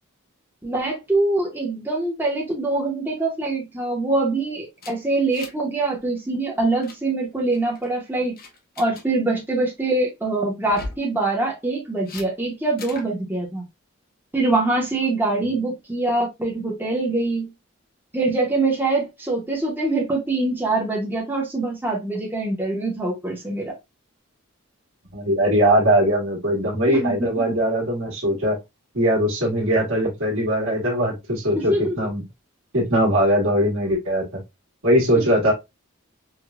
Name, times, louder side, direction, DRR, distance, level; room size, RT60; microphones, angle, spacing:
voice 1, 0.6-8.3 8.8-13.6 14.3-17.5 18.1-23.7 26.9-27.3 31.5-31.9, right 2 dB, 10° right, 0.7 m, -24 dB
sound 1, 4.8-5.7 6.0-6.2 6.5-7.0 7.5-7.9 8.4-9.1 10.6-11.1 12.1-12.3 12.8-13.1, left 3 dB, 45° left, 0.6 m, -38 dB
voice 2, 25.1-28.6 28.9-32.2 32.7-34.4 34.8-35.5, equal, 70° right, 1.5 m, -20 dB
4.7 x 2.2 x 2.3 m
head